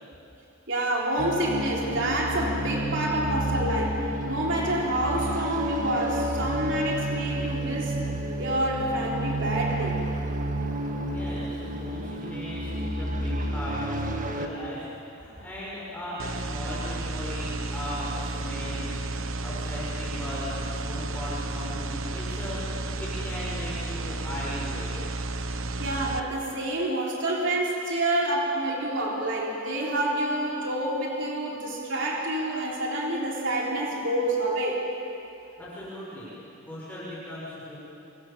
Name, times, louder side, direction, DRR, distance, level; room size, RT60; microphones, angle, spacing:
voice 1, 0.7-8.0 8.4-10.0 25.8-34.9, right 1 dB, 65° right, -2 dB, 3.6 m, -28 dB
sound 1, 1.2-14.5, right 1 dB, 40° right, 1.7 m, -30 dB
voice 2, 11.0-14.9 15.1-24.9 35.6-37.8, left 1 dB, 10° left, -9 dB, 6.3 m, -38 dB
sound 2, 16.2-26.2, right 2 dB, 85° right, 1.2 m, -32 dB
27.5 x 25.5 x 7.5 m, 2.8 s
head